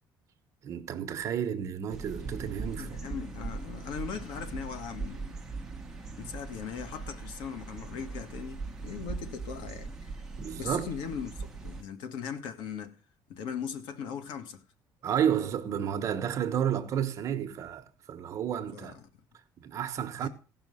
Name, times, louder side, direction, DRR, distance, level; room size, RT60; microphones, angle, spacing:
voice 1, 0.6-3.0 6.1-6.3 10.4-10.9 15.0-18.9 19.6-20.3, right 9 dB, 40° right, 1.1 m, -31 dB
sound 1, 1.9-11.8, right 4 dB, 5° right, 1.1 m, -40 dB
voice 2, 2.8-5.4 6.2-10.1 10.6-13.0 13.3-14.6 18.7-19.1 20.2-20.3, left 7 dB, 80° left, 1.8 m, -39 dB
16.5 x 5.9 x 5.6 m
cardioid pair, 170°, 8 cm